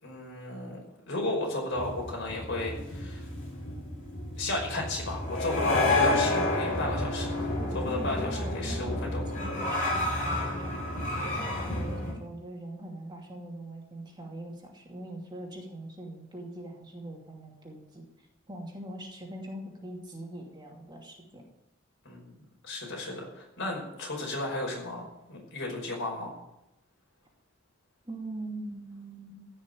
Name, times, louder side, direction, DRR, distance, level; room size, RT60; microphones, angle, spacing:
voice 1, 0.0-3.3 4.4-7.5 7.7-9.4 22.1-22.4 22.6-26.4, left 2 dB, 60° left, 0 dB, 5.4 m, -34 dB
sound 1, 1.7-12.1, left 2 dB, 40° left, 6.4 m, -30 dB
voice 2, 7.6-18.0 18.5-21.4 28.0-29.5, right 1 dB, 20° right, -1 dB, 2.6 m, -42 dB
15.5 x 6.2 x 9.1 m, 0.89 s
head